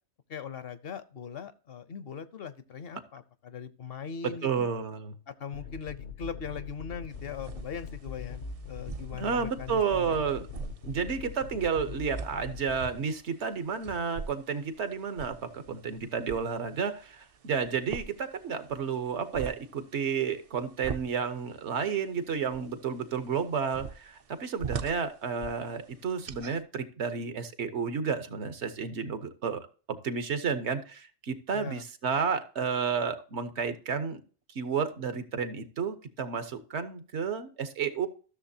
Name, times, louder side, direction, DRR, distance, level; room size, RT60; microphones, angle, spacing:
voice 1, 0.3-4.7 5.3-10.2 31.5-31.8, left 6 dB, 60° left, 14 dB, 0.9 m, -40 dB
voice 2, 4.4-5.1 9.1-10.5 10.8-34.2 34.5-38.1, right 6 dB, 80° right, 10 dB, 1.2 m, -31 dB
sound 1, 5.5-12.9, left 6 dB, 80° left, 1.2 m, -42 dB
sound 2, 7.1-26.6, right 6 dB, 50° right, 0.4 m, -45 dB
14.0 x 6.6 x 2.7 m, 0.39 s
omnidirectional pair, 1.1 m